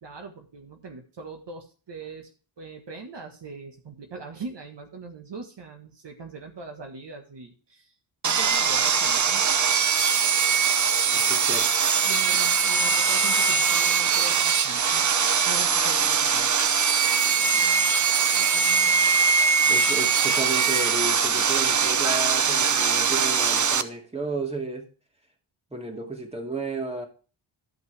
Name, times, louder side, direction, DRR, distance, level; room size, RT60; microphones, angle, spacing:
voice 1, 0.0-2.3 2.6-7.9 8.2-9.4 12.0-15.1 15.5-16.5, right 4 dB, 60° right, 1.6 m, -41 dB
Sawing, 8.2-23.8, right 6 dB, 40° right, 0.8 m, -22 dB
voice 2, 11.1-11.9 19.7-24.9 25.7-27.1, right 2 dB, 15° right, 2.6 m, -33 dB
13.5 x 5.7 x 3.4 m
cardioid pair, 70°, 48 cm